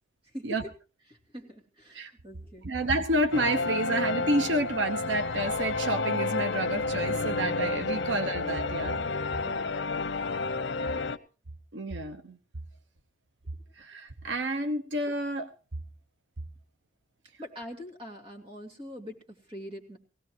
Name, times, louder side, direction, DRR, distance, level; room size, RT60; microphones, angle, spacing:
voice 1, 0.2-0.7 1.1-2.7 9.1-9.6 10.9-11.0 17.4-20.0, left 1 dB, 30° right, 1 dB, 2.7 m, -44 dB
voice 2, 2.6-9.0 9.5-9.6 11.7-12.4 13.8-15.5, right 1 dB, 90° right, 9 dB, 1.0 m, -29 dB
sound 1, 3.3-11.2, left 3 dB, 85° left, 0.7 m, -30 dB
20.0 x 17.0 x 3.0 m, 0.34 s
head